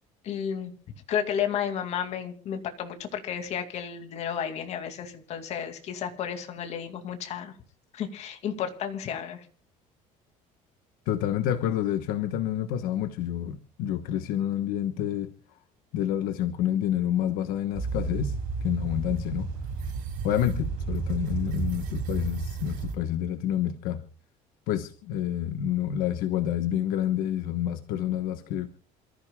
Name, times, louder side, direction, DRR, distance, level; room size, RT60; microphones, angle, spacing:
voice 1, 0.2-0.7 1.1-7.5 7.9-9.5, left 8 dB, 50° left, 6 dB, 2.5 m, -32 dB
voice 2, 11.1-15.3 15.9-19.5 20.2-24.0 24.7-28.7, left 10 dB, 75° left, 8 dB, 1.3 m, -28 dB
sound 1, 17.7-22.9, right 4 dB, 70° right, 5.2 m, -32 dB
28.0 x 14.5 x 2.3 m, 0.40 s
cardioid pair, 155°, 15 cm